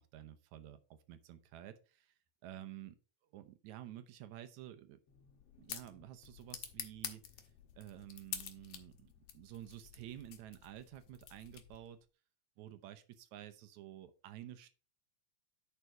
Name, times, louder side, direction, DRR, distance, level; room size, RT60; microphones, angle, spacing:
voice 1, 0.0-2.2 2.4-3.0 3.2-5.0 5.6-7.2 7.8-12.1 12.6-14.7, right 12 dB, 75° right, 10 dB, 2.1 m, -51 dB
sound 1, 5.1-12.0, left 9 dB, 65° left, 1.9 m, -49 dB
10.0 x 4.8 x 4.4 m, 0.34 s
omnidirectional pair, 3.4 m